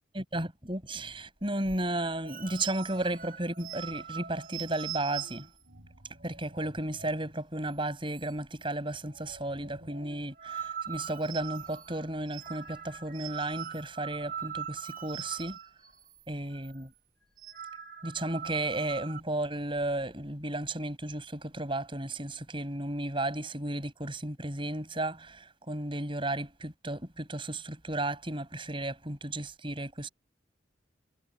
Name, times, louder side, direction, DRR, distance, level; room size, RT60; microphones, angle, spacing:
voice 1, 0.1-5.5 6.2-15.6 16.3-16.9 18.0-30.1, right 1 dB, 25° right, 7.8 m, -34 dB
sound 1, 1.4-7.4 7.7-7.8 8.1-8.6 8.9-16.3 16.5-16.8 17.2-19.2, right 8 dB, 50° right, 6.7 m, -42 dB
head